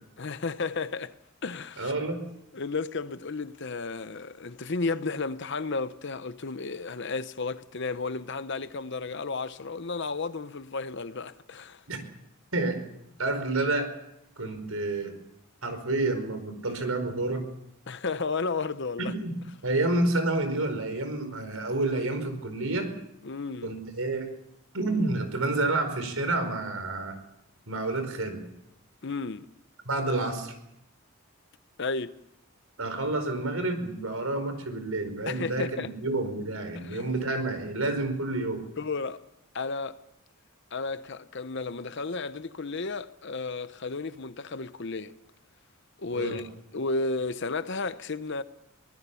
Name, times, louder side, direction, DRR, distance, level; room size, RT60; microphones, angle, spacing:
voice 1, 0.2-1.2 1.4-1.9 2.5-11.8 17.9-19.1 23.2-23.7 29.0-29.5 31.8-32.1 35.3-35.9 36.7-37.1 38.8-39.2 39.5-40.0 40.7-45.1 46.0-46.5 46.7-48.4, left 3 dB, 55° left, 0.8 m, -33 dB
voice 2, 1.8-2.2 11.9-12.0 12.5-12.8 13.2-13.9 14.4-15.1 15.6-17.4 19.0-19.3 19.6-22.9 23.6-24.3 24.7-27.1 27.7-28.4 29.8-30.5 32.8-38.6 46.1-46.4, right 2 dB, 80° right, 4.8 m, -29 dB
24.0 x 19.0 x 7.0 m
head